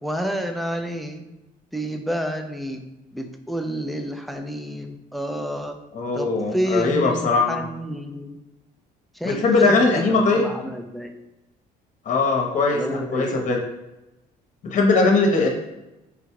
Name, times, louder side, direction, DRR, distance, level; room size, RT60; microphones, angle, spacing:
voice 1, 0.0-1.2 1.7-2.8 3.1-5.8 6.1-8.4 9.1-11.2 12.7-13.6, equal, ahead, 5 dB, 0.4 m, -29 dB
voice 2, 5.9-7.6 9.2-10.5 12.0-13.6 14.6-15.5, left 3 dB, 45° left, 1 dB, 0.9 m, -20 dB
3.9 x 2.3 x 4.5 m, 0.98 s
cardioid pair, 110°, 17 cm